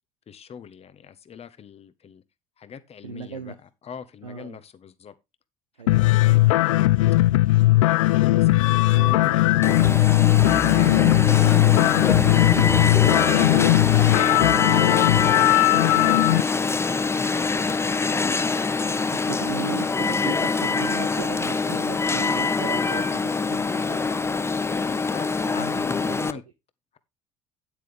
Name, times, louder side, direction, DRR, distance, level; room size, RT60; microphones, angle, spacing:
voice 1, 0.3-2.2 2.6-5.1 5.8-6.9 7.8-14.5 15.1-18.5 24.8-26.4, left 7 dB, 35° left, 1.5 m, -43 dB
voice 2, 3.0-3.6 4.2-4.6 5.8-6.1 14.3-14.6 19.0-24.4 25.3-26.3, right 7 dB, 85° right, 1.0 m, -37 dB
sound 1, 5.9-16.4, left 18 dB, 75° left, 0.4 m, -18 dB
sound 2, 8.8-15.0, right 3 dB, 10° right, 0.6 m, -36 dB
Alarm, 9.6-26.3, left 4 dB, 15° left, 0.9 m, -24 dB
9.8 x 8.4 x 3.5 m
figure-of-eight pair, 60°, 17 cm